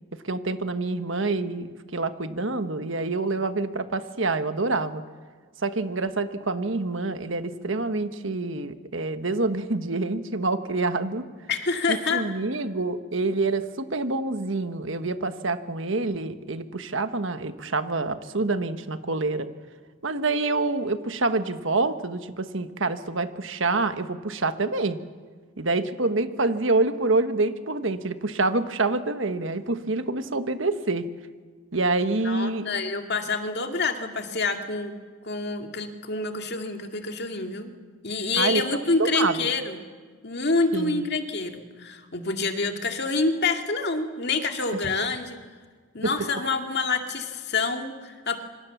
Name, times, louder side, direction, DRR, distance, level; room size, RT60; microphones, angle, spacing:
voice 1, 0.2-5.0 5.6-11.2 11.9-19.5 20.0-25.0 25.6-31.1 31.7-32.7 38.4-39.4 40.7-41.0 46.0-46.1, right 3 dB, 65° right, 9 dB, 1.3 m, -27 dB
voice 2, 11.5-12.3 32.2-34.9 35.2-37.7 38.0-39.8 40.2-45.4 45.9-48.4, left 3 dB, 50° left, 4 dB, 2.2 m, -27 dB
27.0 x 25.5 x 7.2 m, 1.5 s
head